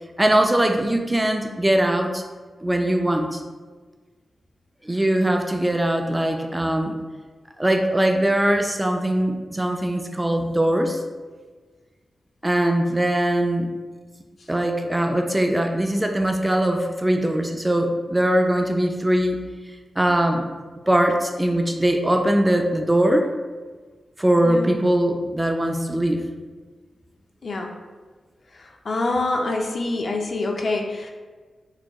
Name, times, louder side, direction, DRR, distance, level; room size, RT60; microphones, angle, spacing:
voice 1, 0.2-2.2 2.6-3.4 4.9-7.0 7.6-11.0 12.4-13.7 14.5-19.4 20.0-20.5 20.9-23.3 24.2-26.2, right 1 dB, 20° right, 4 dB, 0.3 m, -21 dB
voice 2, 28.5-31.1, left 2 dB, 60° left, 1 dB, 0.3 m, -26 dB
4.4 x 2.2 x 2.2 m, 1.4 s
cardioid pair, 50°, 0 cm